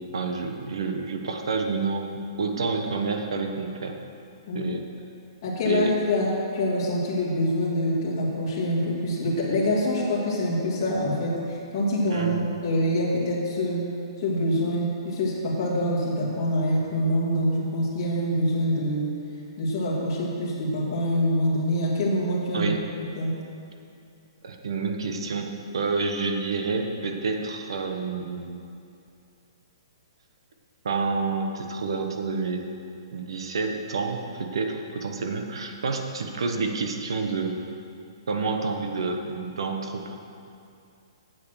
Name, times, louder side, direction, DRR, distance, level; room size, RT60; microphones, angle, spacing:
voice 1, 0.0-4.0 4.5-4.8 5.6-5.9 12.1-12.5 22.5-22.8 24.4-28.6 30.8-32.6 33.1-37.6 38.3-40.2, right 4 dB, 75° right, 4 dB, 1.2 m, -29 dB
voice 2, 5.4-12.3 12.6-13.9 14.2-19.1 19.6-22.7 23.2-23.3, equal, 30° left, -7 dB, 2.0 m, -25 dB
8.8 x 7.8 x 6.4 m, 2.5 s
hypercardioid pair, 170°, 3 cm